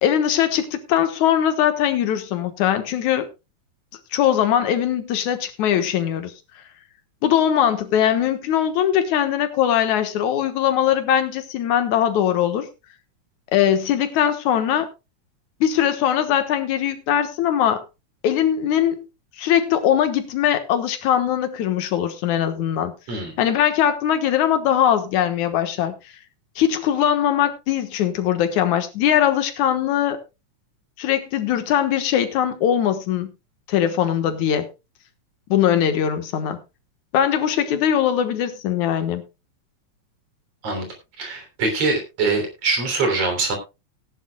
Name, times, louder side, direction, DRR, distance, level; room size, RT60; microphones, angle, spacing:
voice 1, 0.0-3.3 4.1-6.3 7.2-12.7 13.5-14.9 15.6-17.8 18.2-19.1 19.4-22.9 23.4-25.9 26.6-30.2 31.0-33.3 33.7-34.7 35.5-36.6 37.1-39.2, left 10 dB, 80° left, 2.7 m, -21 dB
voice 2, 41.2-43.6, right 3 dB, 55° right, 4.3 m, -23 dB
18.0 x 11.0 x 2.3 m
omnidirectional pair, 3.4 m